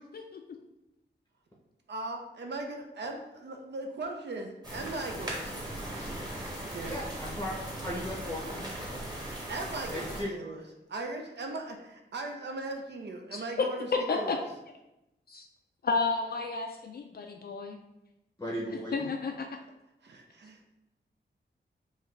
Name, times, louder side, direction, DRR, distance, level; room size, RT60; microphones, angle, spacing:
voice 1, 1.9-6.1 6.7-7.1 9.5-10.6 10.9-14.4 20.0-20.7, right 2 dB, 65° right, 3 dB, 0.5 m, -38 dB
sound 1, 4.6-10.2, right 1 dB, 20° right, 1.2 m, -38 dB
voice 2, 6.9-7.5 7.8-9.0 9.9-10.3 18.4-18.9, equal, 15° left, -3 dB, 0.7 m, -37 dB
voice 3, 13.3-14.4 15.3-15.4 15.8-17.8 18.7-19.6, left 4 dB, 55° left, 3 dB, 0.4 m, -32 dB
4.7 x 2.7 x 3.2 m, 0.91 s
wide cardioid pair, 105°, 19 cm